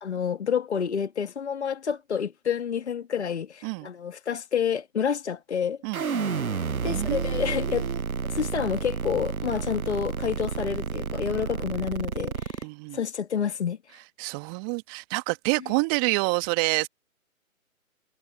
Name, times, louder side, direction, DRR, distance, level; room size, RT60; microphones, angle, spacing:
voice 1, 0.0-5.8 6.8-7.9 8.3-12.6 12.9-14.0, left 7 dB, 50° left, 1.8 m, -29 dB
sound 1, 5.9-12.6, right 6 dB, 85° right, 0.8 m, -30 dB
voice 2, 6.8-8.0 12.6-13.0 14.2-16.9, right 34 dB, 15° right, 1.6 m, -28 dB
figure-of-eight pair, 140°, 42 cm